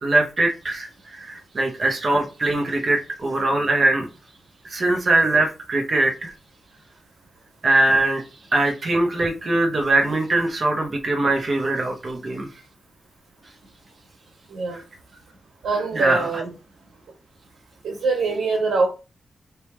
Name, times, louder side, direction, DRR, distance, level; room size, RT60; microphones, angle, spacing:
voice 1, 0.0-4.1 4.6-6.3 7.6-8.2 8.5-12.5 14.7-14.8 15.9-16.4, right 2 dB, 35° right, 0.8 m, -22 dB
voice 2, 14.5-14.8 15.6-16.5 17.8-18.9, right 3 dB, 90° right, 1.5 m, -23 dB
4.3 x 3.4 x 3.1 m
wide cardioid pair, 165°, 0 cm